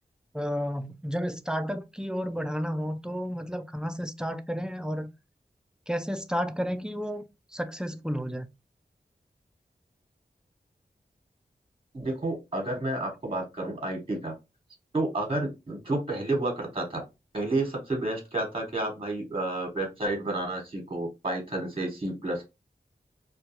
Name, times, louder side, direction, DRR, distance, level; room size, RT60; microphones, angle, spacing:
voice 1, 0.3-5.1 5.9-7.2 7.5-8.5, equal, 5° right, 0.3 m, -31 dB
voice 2, 11.9-14.3 14.9-17.0 17.3-22.5, right 2 dB, 35° right, 1.1 m, -30 dB
2.2 x 2.2 x 2.8 m
cardioid pair, 40°, 17 cm